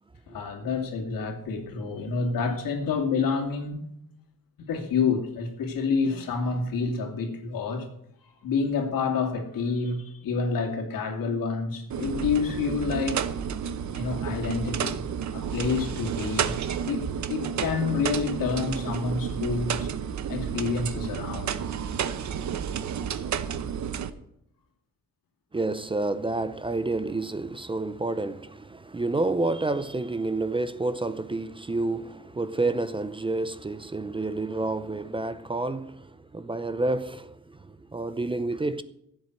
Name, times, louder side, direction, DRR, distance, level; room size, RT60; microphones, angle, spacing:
voice 1, 0.3-3.9 4.6-7.9 8.4-13.2 13.9-15.0 15.3-17.0 17.3-19.9 20.3-21.5, left 5 dB, 90° left, 2.5 m, -28 dB
sound 1, 11.9-24.1, right 8 dB, 60° right, 0.9 m, -31 dB
voice 2, 25.5-38.8, right 2 dB, 15° right, 0.5 m, -29 dB
15.5 x 8.0 x 6.5 m
wide cardioid pair, 150°, 33 cm